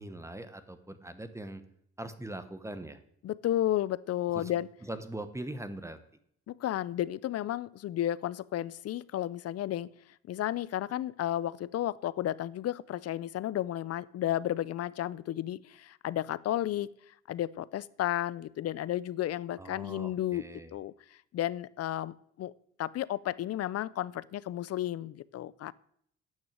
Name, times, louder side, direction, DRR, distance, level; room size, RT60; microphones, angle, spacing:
voice 1, 0.0-1.6 2.0-3.0 4.3-4.5 4.8-6.0 19.6-20.7, right 1 dB, 10° right, 11 dB, 1.0 m, -41 dB
voice 2, 3.2-4.7 6.5-9.9 10.3-16.9 17.3-20.4 20.7-20.9 21.3-22.5 22.8-25.7, left 12 dB, 55° left, 20 dB, 0.5 m, -32 dB
9.1 x 6.1 x 8.5 m, 0.69 s
cardioid pair, 90°, 30 cm